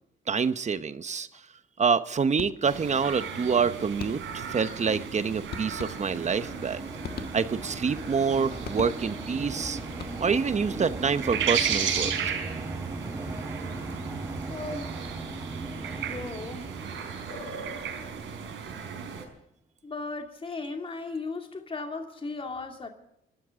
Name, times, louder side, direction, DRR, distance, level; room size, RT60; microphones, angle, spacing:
voice 1, 0.3-1.3 1.8-6.8 7.3-9.8 10.2-12.1, right 5 dB, 35° right, 13 dB, 1.0 m, -27 dB
sound 1, 2.4-2.9 4.0-4.5 5.5-6.4 7.0-7.8 8.6-9.3 9.9-10.5, left 6 dB, 50° left, 1.6 m, -41 dB
sound 2, 2.7-19.2, right 7 dB, 80° right, 4.5 m, -35 dB
sound 3, 5.0-19.1, right 2 dB, 15° right, 1.4 m, -39 dB
voice 2, 14.5-15.1 16.0-16.7 19.8-22.9, left 3 dB, 25° left, 4 dB, 2.5 m, -36 dB
25.5 x 13.0 x 3.7 m, 0.75 s
cardioid pair, 90°, 20 cm